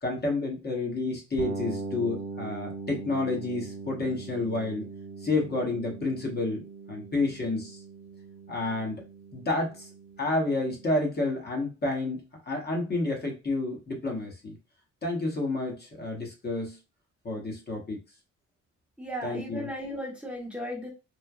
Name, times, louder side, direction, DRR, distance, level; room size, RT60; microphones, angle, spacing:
voice 1, 0.0-4.9 5.2-7.8 8.5-9.0 9.3-9.9 10.2-14.6 15.0-16.8 17.2-18.0 19.2-19.7, left 2 dB, 35° left, 0 dB, 1.1 m, -30 dB
sound 1, 1.4-11.1, right 3 dB, 70° right, 0.8 m, -41 dB
voice 2, 19.0-20.9, equal, 5° right, -2 dB, 1.0 m, -35 dB
3.1 x 2.2 x 2.3 m, 0.28 s
cardioid pair, 90°, 30 cm